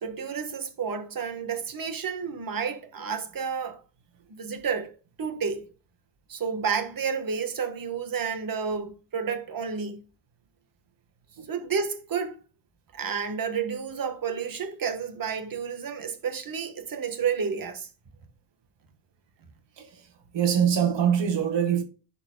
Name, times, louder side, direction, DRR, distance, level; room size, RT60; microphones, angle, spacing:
voice 1, 0.0-3.8 4.3-4.9 5.2-5.7 6.3-10.0 11.5-12.4 12.9-17.9, right 6 dB, 50° right, 1.4 m, -30 dB
voice 2, 19.8-21.8, right 8 dB, 70° right, 1.6 m, -24 dB
11.0 x 4.5 x 2.3 m
cardioid pair, 95°, 44 cm